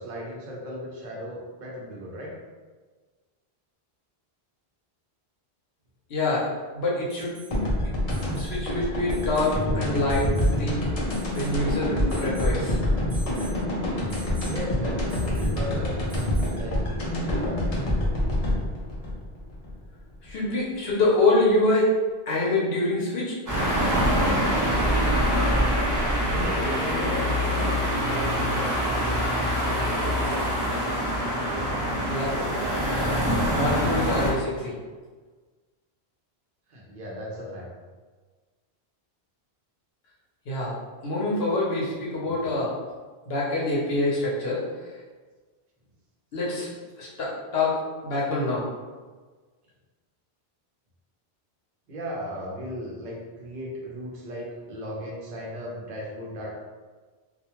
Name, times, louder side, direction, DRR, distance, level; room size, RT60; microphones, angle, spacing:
voice 1, 0.0-2.3 14.4-16.0 16.5-17.6 25.7-28.9 36.7-37.7 42.3-42.4 51.9-56.6, equal, 55° right, -3 dB, 0.7 m, -36 dB
voice 2, 6.1-6.5 6.7-8.1 8.4-10.3 10.6-10.8 11.3-12.8 20.2-21.9 22.3-23.3 32.1-32.5 33.5-34.7 40.5-40.7 41.0-42.7 43.3-44.6 46.3-46.7 47.0-48.6, left 2 dB, 70° left, -5 dB, 0.9 m, -25 dB
Alarm, 7.1-7.6 8.1-8.6 9.1-9.6 10.1-10.6 11.1-11.6 12.1-12.6 13.1-13.6 14.1-14.6 15.1-15.6 16.1-16.6 18.3-18.4, right 2 dB, 85° right, 0.9 m, -47 dB
sound 1, 7.5-20.3, left 1 dB, 45° left, 0.6 m, -26 dB
sound 2, 23.5-34.3, equal, 25° right, 0.4 m, -24 dB
2.3 x 2.2 x 2.9 m, 1.4 s
omnidirectional pair, 1.1 m